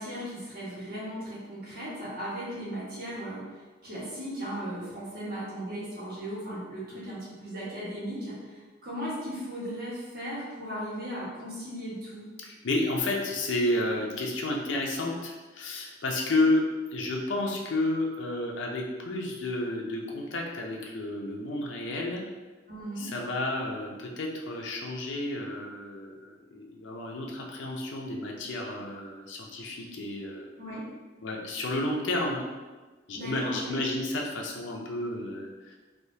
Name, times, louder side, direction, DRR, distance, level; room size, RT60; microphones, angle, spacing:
voice 1, 0.0-3.5 3.8-12.2 22.7-23.1 30.6-30.9 33.1-33.8, equal, 55° right, -8 dB, 1.3 m, -37 dB
voice 2, 12.4-16.6 16.9-22.2 23.0-30.5 31.2-32.4 33.1-35.8, left 2 dB, 85° left, 0 dB, 0.6 m, -31 dB
3.4 x 2.7 x 2.7 m, 1.3 s
head